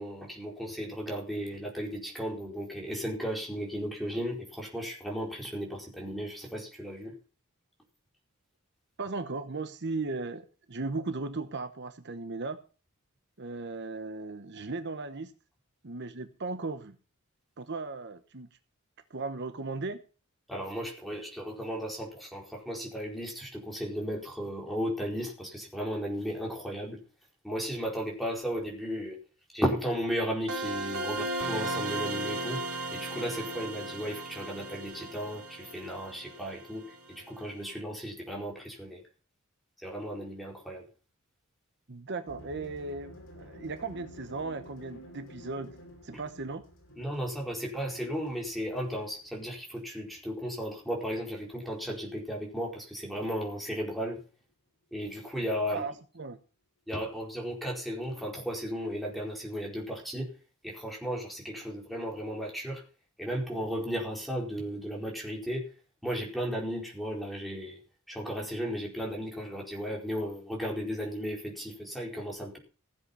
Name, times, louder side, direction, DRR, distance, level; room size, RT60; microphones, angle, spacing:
voice 1, 0.0-7.1 20.5-27.0 27.4-29.2 29.5-32.6 32.9-39.0 39.8-40.8 47.0-54.2 54.9-55.8 56.9-60.3 60.6-62.8 63.2-65.6 66.0-67.8 68.1-72.6, equal, ahead, -1 dB, 4.4 m, -35 dB
voice 2, 9.0-12.6 13.4-15.3 15.8-16.9 17.6-18.5 19.1-20.0 41.9-45.8 46.0-46.6 55.7-56.4, right 3 dB, 55° right, 9 dB, 1.0 m, -36 dB
sound 1, 30.5-37.1, right 2 dB, 80° right, 3.5 m, -36 dB
sound 2, 42.3-51.2, equal, 60° left, 5.6 m, -51 dB
16.0 x 7.9 x 5.6 m, 0.36 s
head